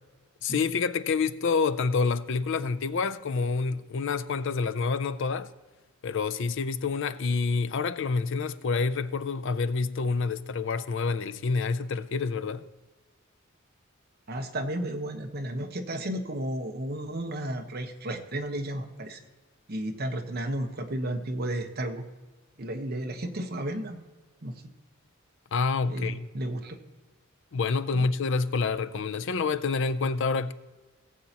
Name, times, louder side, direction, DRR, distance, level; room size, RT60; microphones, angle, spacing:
voice 1, 0.4-5.5 6.0-12.6 25.5-26.3 27.5-30.5, left 4 dB, 60° left, 0.5 m, -28 dB
voice 2, 14.3-19.2 19.7-22.0 22.6-24.0 24.4-24.7 25.9-26.8 27.9-28.1, right 1 dB, 50° right, 1.1 m, -33 dB
18.5 x 8.0 x 2.9 m
head